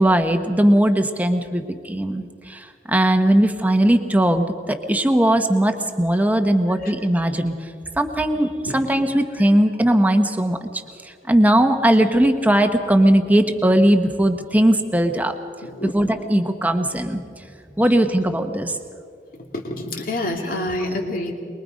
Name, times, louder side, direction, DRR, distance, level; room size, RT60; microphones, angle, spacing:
voice 1, 0.0-7.5 8.0-10.7 11.3-15.3 15.9-17.2 17.8-18.8, right 1 dB, 10° right, 6 dB, 1.1 m, -19 dB
voice 2, 15.6-15.9 19.3-21.3, left 1 dB, 55° left, 2 dB, 2.4 m, -28 dB
23.5 x 21.5 x 5.2 m, 2.2 s
head